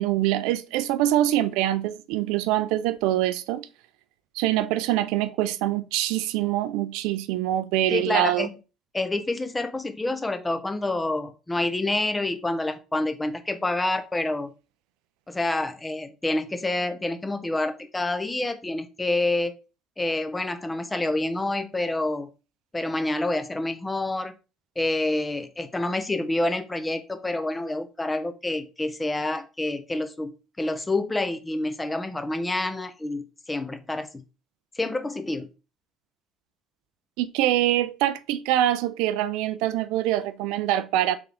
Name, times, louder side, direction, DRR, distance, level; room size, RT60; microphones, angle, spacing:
voice 1, 0.0-3.7 4.4-8.5 37.2-41.2, right 13 dB, 80° right, 0.4 m, -24 dB
voice 2, 7.9-8.5 8.9-14.5 15.3-19.5 20.0-22.3 22.7-24.3 24.8-34.2 34.8-35.5, left 2 dB, 15° left, 0.7 m, -28 dB
3.6 x 3.4 x 3.4 m
supercardioid pair, 80°, 0 cm